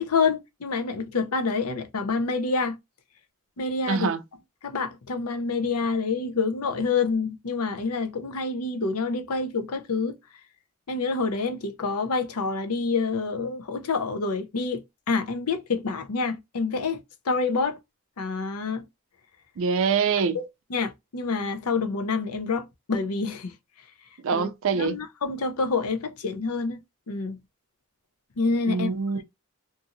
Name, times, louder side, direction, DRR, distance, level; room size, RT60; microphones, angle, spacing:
voice 1, 0.0-2.8 3.6-4.1 4.6-10.2 10.9-17.8 18.2-18.8 20.3-23.5 24.3-24.5 24.7-26.8 27.1-27.4 28.4-28.9, left 4 dB, 85° left, 0.6 m, -27 dB
voice 2, 3.9-4.2 19.6-20.4 24.2-25.0 28.6-29.2, right 5 dB, 60° right, 0.4 m, -24 dB
2.6 x 2.5 x 2.7 m
head